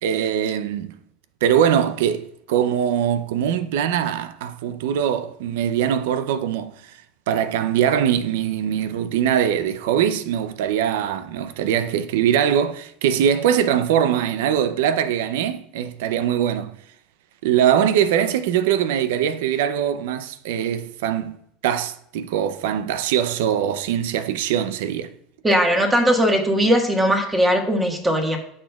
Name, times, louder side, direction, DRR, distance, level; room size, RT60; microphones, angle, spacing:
voice 1, 0.0-1.0 1.4-7.0 7.3-16.8 17.4-21.4 21.6-25.1, right 9 dB, 80° right, 0.5 m, -22 dB
voice 2, 25.4-28.4, equal, 15° right, 1.5 m, -19 dB
9.7 x 6.5 x 2.3 m
supercardioid pair, 110°, 0 cm